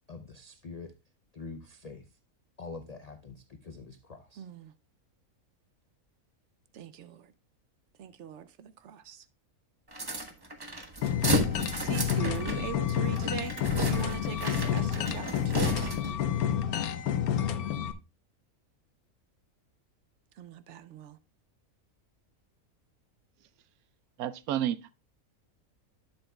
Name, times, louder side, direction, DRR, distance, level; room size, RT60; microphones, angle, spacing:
voice 1, 0.1-0.9 1.3-2.1 2.6-4.5, left 3 dB, 65° left, 0.4 m, -45 dB
voice 2, 4.4-4.7 6.7-7.3 8.0-9.3 11.7-13.6 13.9-15.8 20.4-21.2, right 8 dB, 65° right, 0.8 m, -41 dB
sound 1, 9.9-16.3, right 1 dB, 20° right, 0.7 m, -34 dB
sound 2, 11.0-17.9, left 9 dB, 80° left, 1.2 m, -29 dB
voice 3, 24.2-24.9, right 11 dB, 80° right, 1.1 m, -31 dB
11.0 x 7.0 x 2.2 m
omnidirectional pair, 1.5 m